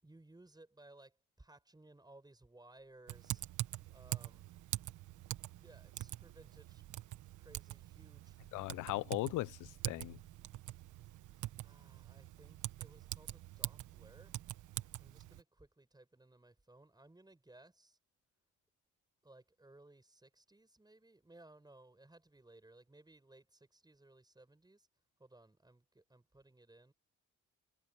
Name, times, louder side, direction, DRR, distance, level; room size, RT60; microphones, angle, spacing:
voice 1, 0.0-3.4 3.9-4.5 5.6-6.8 7.4-8.4 11.4-14.4 15.0-18.0 19.2-24.9 25.2-26.9, right 2 dB, 15° right, 7.4 m, -61 dB
Typing, 3.1-15.4, right 14 dB, 80° right, 1.4 m, -45 dB
voice 2, 8.5-10.2, left 18 dB, 85° left, 0.6 m, -38 dB
cardioid pair, 90°, 30 cm